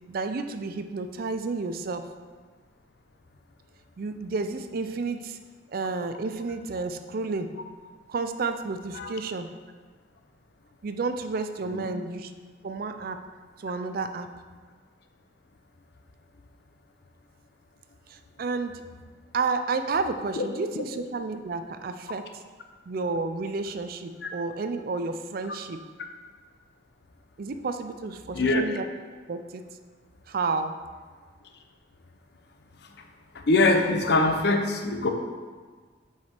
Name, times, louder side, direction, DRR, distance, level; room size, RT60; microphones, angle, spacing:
voice 1, 0.1-2.1 4.0-5.4 5.7-7.5 8.1-9.5 10.8-12.3 12.6-13.2 13.6-14.3 18.1-18.8 19.3-22.4 22.9-25.8 27.4-28.9 29.3-29.6 30.3-30.8, right 4 dB, 50° right, 9 dB, 0.4 m, -31 dB
voice 2, 28.3-28.7 33.3-35.1, left 2 dB, 60° left, 5 dB, 0.6 m, -23 dB
5.7 x 4.8 x 4.4 m, 1.5 s
head